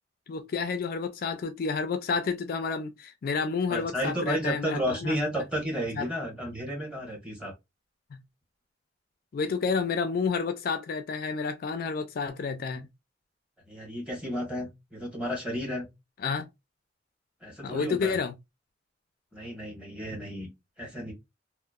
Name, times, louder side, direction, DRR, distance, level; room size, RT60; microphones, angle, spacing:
voice 1, 0.3-5.2 6.0-6.1 8.1-8.2 9.3-12.9 16.2-16.5 17.6-18.3, left 5 dB, 55° left, 0.3 m, -30 dB
voice 2, 3.7-7.5 13.7-15.9 17.4-18.2 19.3-20.5 20.8-21.1, equal, 5° right, 1.1 m, -32 dB
2.9 x 2.0 x 2.2 m
head